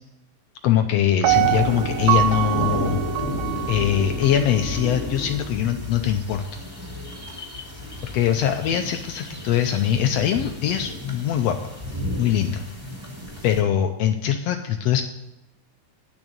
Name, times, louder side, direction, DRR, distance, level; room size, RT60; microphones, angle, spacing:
voice 1, 0.6-3.0 3.7-6.4 8.1-11.7 12.2-12.6 13.4-15.0, left 10 dB, 85° left, 6 dB, 1.5 m, -22 dB
Piano, 1.2-4.3 4.8-4.9, right 15 dB, 80° right, 1.8 m, -24 dB
sound 1, 1.3-13.6, left 1 dB, 10° right, 2.2 m, -32 dB
9.8 x 6.2 x 8.6 m, 0.95 s
omnidirectional pair, 3.6 m